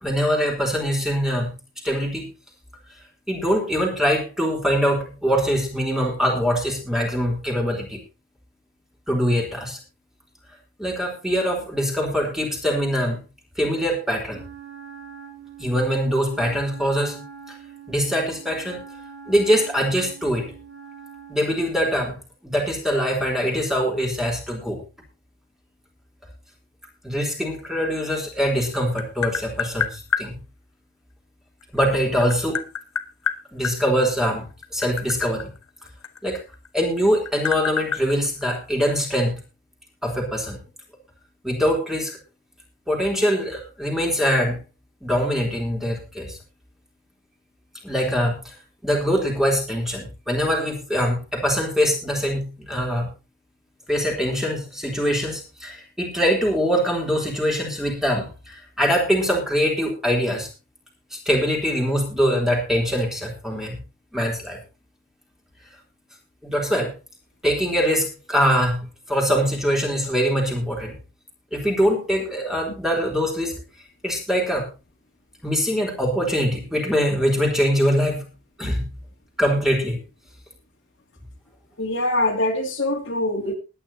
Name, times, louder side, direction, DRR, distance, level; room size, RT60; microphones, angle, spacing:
voice 1, 0.0-1.5 1.8-2.3 3.3-8.0 9.1-9.8 10.8-13.2 13.6-14.4 15.6-17.2 17.9-18.8 19.3-20.5 21.3-22.2 22.4-24.8 27.0-30.4 31.7-32.6 33.5-34.5 34.7-35.5 36.2-36.4 36.7-39.4 40.0-40.6 41.4-42.2 42.9-44.6 45.0-46.4 47.8-48.5 48.8-53.1 53.9-60.5 61.1-63.8 64.1-64.6 66.4-66.9 67.4-71.0 71.5-73.5 74.0-74.7 75.4-78.3 78.6-78.9 79.4-80.0, equal, ahead, -1 dB, 3.5 m, -23 dB
Wind instrument woodwind instrument, 14.3-21.5, right 6 dB, 55° right, 7.3 m, -43 dB
Tap, 28.6-30.3 31.6-33.8 34.5-36.7 37.0-39.0, left 7 dB, 75° left, 1.2 m, -27 dB
voice 2, 81.8-83.5, left 1 dB, 60° left, 0 dB, 2.8 m, -23 dB
20.5 x 10.0 x 2.8 m, 0.29 s
head